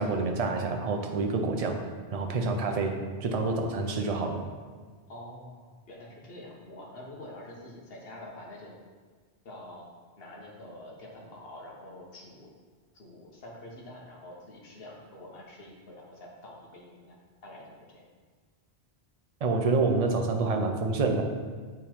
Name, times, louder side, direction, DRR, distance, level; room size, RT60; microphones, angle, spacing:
voice 1, 0.0-1.9 2.1-4.4 19.4-21.2, right 3 dB, 40° right, 4 dB, 0.6 m, -27 dB
voice 2, 5.1-8.7 9.4-9.9 10.2-12.5 12.9-17.2 17.4-18.0, left 1 dB, 60° left, -2 dB, 1.3 m, -46 dB
6.7 x 3.6 x 4.4 m, 1.5 s
omnidirectional pair, 1.1 m